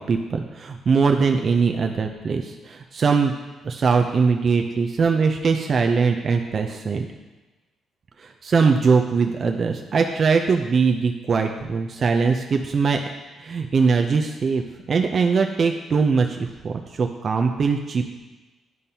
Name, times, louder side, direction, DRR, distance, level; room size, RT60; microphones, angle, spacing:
voice 1, 0.0-3.3 3.6-7.1 8.2-13.0 13.4-18.2, right 5 dB, 45° right, 4 dB, 0.5 m, -21 dB
10.5 x 5.3 x 2.8 m, 1.2 s
cardioid pair, 90°, 0 cm